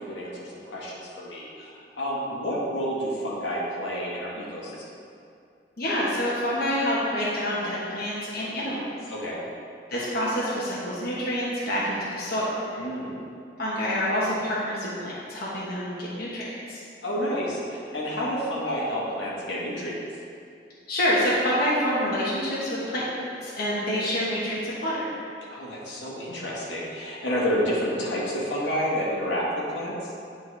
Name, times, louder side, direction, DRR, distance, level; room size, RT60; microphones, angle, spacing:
voice 1, 0.0-4.8 9.1-9.4 12.8-13.2 17.0-20.0 25.5-30.0, equal, 80° left, -6 dB, 1.5 m, -29 dB
voice 2, 5.8-8.8 9.9-12.6 13.6-16.8 20.9-25.1, equal, 60° left, -8 dB, 1.2 m, -27 dB
9.5 x 4.4 x 3.3 m, 2.4 s
head